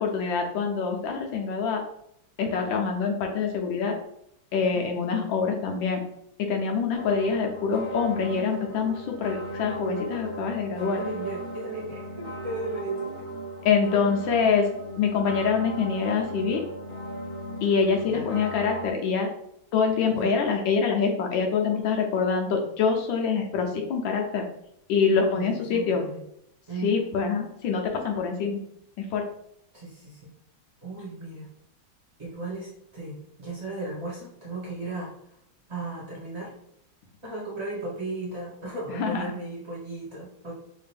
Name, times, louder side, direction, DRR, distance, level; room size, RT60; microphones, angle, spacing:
voice 1, 0.0-1.8 2.4-3.9 4.5-6.0 6.4-11.0 13.6-14.7 15.0-16.6 17.6-19.3 19.7-24.5 24.9-26.1 26.8-28.6 29.0-29.2 38.9-39.3, left 5 dB, 75° left, 2 dB, 1.3 m, -25 dB
sound 1, 6.9-18.9, right 1 dB, 40° left, 0.7 m, -36 dB
voice 2, 10.8-13.3 18.0-18.3 20.1-20.3 25.3-26.2 26.7-27.1 29.7-30.3 30.8-31.5 32.2-35.1 35.7-36.5 37.2-40.5, right 2 dB, 40° right, -5 dB, 1.2 m, -36 dB
3.4 x 2.5 x 3.3 m, 0.74 s
omnidirectional pair, 2.2 m